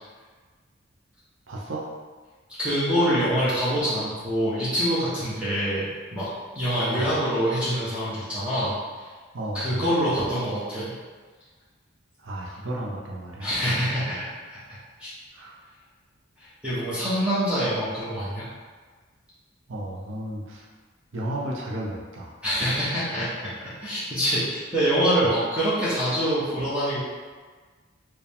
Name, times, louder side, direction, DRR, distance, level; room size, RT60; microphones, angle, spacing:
voice 1, 1.5-1.9 6.9-7.1 9.3-9.8 12.2-13.5 15.3-15.5 19.7-20.6 21.1-22.3 25.2-25.4, right 1 dB, 75° right, -3 dB, 0.7 m, -33 dB
voice 2, 2.6-6.3 6.5-9.1 9.5-10.9 13.4-15.1 16.4-18.4 22.4-23.3 23.6-27.0, equal, 5° right, -12 dB, 0.9 m, -25 dB
4.6 x 2.3 x 3.5 m, 1.5 s
head